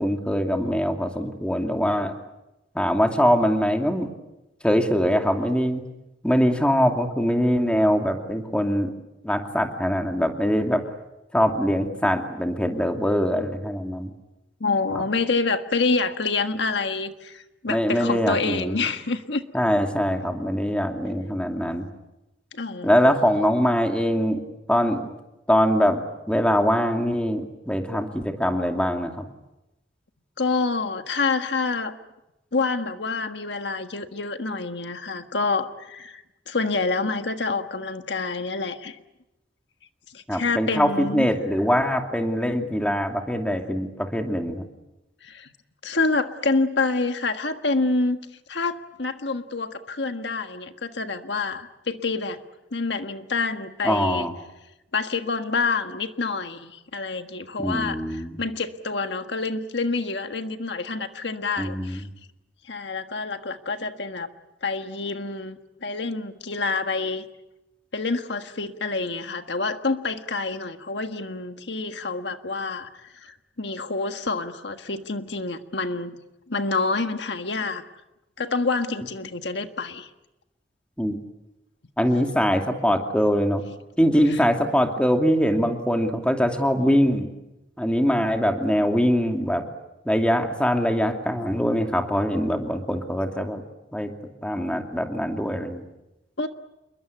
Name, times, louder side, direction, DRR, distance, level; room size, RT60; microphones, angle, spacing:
voice 1, 0.0-2.1 2.7-4.1 4.6-5.8 6.2-8.9 9.2-10.8 11.3-14.1 14.9-15.0 17.7-18.8 19.5-21.9 22.8-24.4 24.7-25.1 25.5-26.0 26.3-29.2 40.3-44.7 53.8-54.3 57.6-58.4 61.6-62.0 81.0-81.2 82.0-83.6 84.0-87.3 87.8-89.6 90.0-93.6 93.9-94.1 94.4-95.9, equal, 5° left, 4 dB, 2.6 m, -23 dB
voice 2, 14.6-19.4 22.5-22.9 30.4-32.0 32.5-39.0 40.1-41.3 45.2-45.5 45.8-48.2 48.5-52.4 52.7-54.3 54.9-62.0 62.6-64.3 64.6-67.2 67.9-76.2 76.5-77.8 78.4-80.1 84.3-84.4 96.4-96.5, left 3 dB, 65° left, 7 dB, 1.6 m, -27 dB
29.0 x 22.5 x 8.4 m, 0.95 s
head